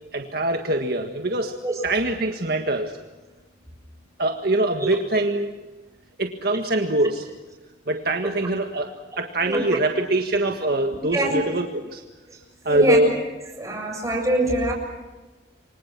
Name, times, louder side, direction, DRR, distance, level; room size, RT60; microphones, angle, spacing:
voice 1, 0.1-1.6 1.8-3.0 4.2-5.5 6.2-7.3 7.9-12.0 12.7-13.1, right 1 dB, 55° right, 4 dB, 1.8 m, -23 dB
voice 2, 9.4-9.8 11.1-11.3 12.3-12.4 12.7-13.0 13.5-14.7, right 1 dB, 20° right, 1 dB, 7.2 m, -24 dB
29.0 x 25.0 x 6.2 m, 1.2 s
head